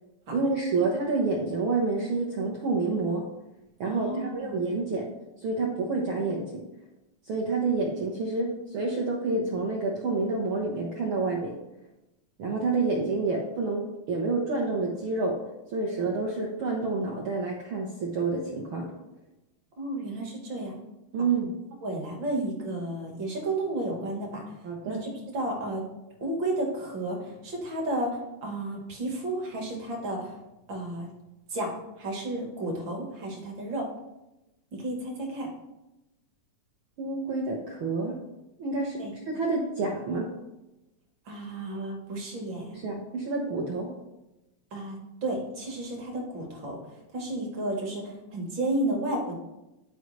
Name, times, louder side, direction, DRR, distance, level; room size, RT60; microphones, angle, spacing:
voice 1, 0.3-3.3 3.8-5.0 5.4-6.6 7.3-11.6 12.4-15.4 15.7-18.9 21.1-21.6 24.6-25.0 37.0-38.2 38.6-39.0 39.3-40.3 42.7-43.9, right 3 dB, 70° right, -2 dB, 1.2 m, -28 dB
voice 2, 3.8-4.6 19.8-20.8 21.8-24.4 24.9-25.8 26.2-30.4 30.7-31.1 31.5-33.9 34.7-35.5 39.0-39.1 41.3-42.8 44.7-49.3, right 1 dB, 50° right, 0 dB, 1.7 m, -32 dB
11.0 x 4.7 x 3.2 m, 0.97 s
omnidirectional pair, 3.4 m